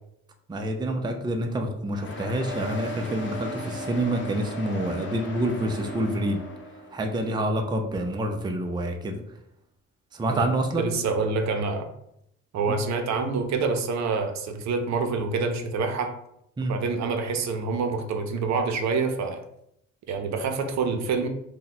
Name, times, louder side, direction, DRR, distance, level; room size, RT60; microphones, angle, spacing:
voice 1, 0.5-6.4 6.9-9.2 10.1-10.9 12.7-12.8 16.6-16.7, right 1 dB, 15° right, 3 dB, 0.4 m, -27 dB
sound 1, 1.9-7.0, left 1 dB, 40° left, 0.8 m, -36 dB
voice 2, 10.8-11.9 12.5-16.1 16.7-19.4 20.1-21.3, right 4 dB, 65° right, 5 dB, 0.5 m, -26 dB
2.7 x 2.1 x 4.0 m, 0.77 s
cardioid pair, 90°, 30 cm